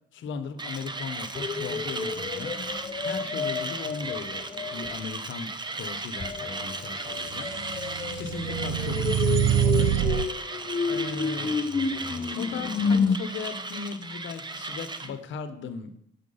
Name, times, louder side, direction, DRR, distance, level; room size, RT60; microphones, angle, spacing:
voice 1, 0.1-9.9 10.2-10.3 10.9-11.6 12.2-15.9, left 5 dB, 75° left, 9 dB, 1.0 m, -38 dB
Mechanisms, 0.6-15.1, right 3 dB, 20° right, 0.8 m, -36 dB
sound 1, 1.4-5.0 6.2-13.2, left 5 dB, 25° left, 0.5 m, -30 dB
sound 2, 7.4-10.3, right 11 dB, 85° right, 0.4 m, -25 dB
7.7 x 5.9 x 5.6 m, 0.72 s
cardioid pair, 90°, 20 cm